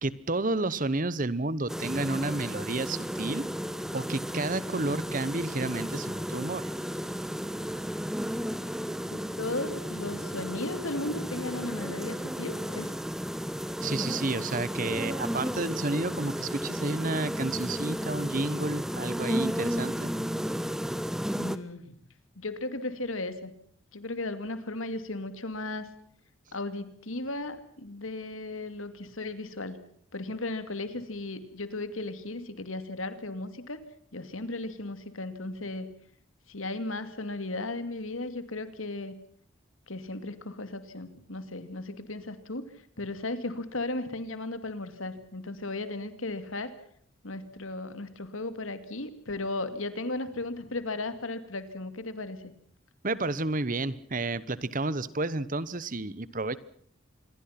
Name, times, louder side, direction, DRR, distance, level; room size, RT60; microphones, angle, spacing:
voice 1, 0.0-3.4 3.9-6.7 13.8-20.1 53.0-56.6, right 2 dB, 40° right, 18 dB, 1.0 m, -31 dB
sound 1, 1.7-21.6, equal, ahead, 0.9 m, -33 dB
voice 2, 9.1-12.9 21.4-21.9 22.4-23.5 23.9-25.9 26.5-29.8 30.1-33.8 34.1-35.9 36.5-39.1 39.9-42.7 43.0-46.7 47.2-52.4, left 2 dB, 80° left, 11 dB, 2.5 m, -36 dB
27.0 x 22.0 x 5.9 m, 0.62 s
head